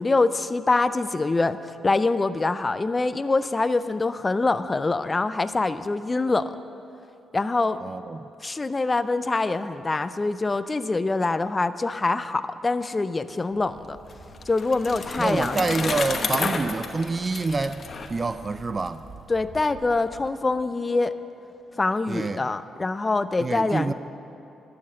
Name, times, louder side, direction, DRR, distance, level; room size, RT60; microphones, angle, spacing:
voice 1, 0.0-1.6 1.8-6.4 7.3-7.8 8.4-14.0 14.5-15.6 19.3-21.1 21.8-23.9, left 3 dB, 30° left, 12 dB, 0.5 m, -24 dB
voice 2, 7.8-8.3 15.2-19.0 22.1-22.4 23.4-23.9, right 3 dB, 35° right, 12 dB, 0.4 m, -27 dB
sound 1, 13.5-20.3, right 2 dB, 70° right, 2.2 m, -48 dB
Bicycle, 13.8-18.9, left 4 dB, 50° left, 1.0 m, -31 dB
11.5 x 7.8 x 8.4 m, 2.7 s
supercardioid pair, 65°, 0 cm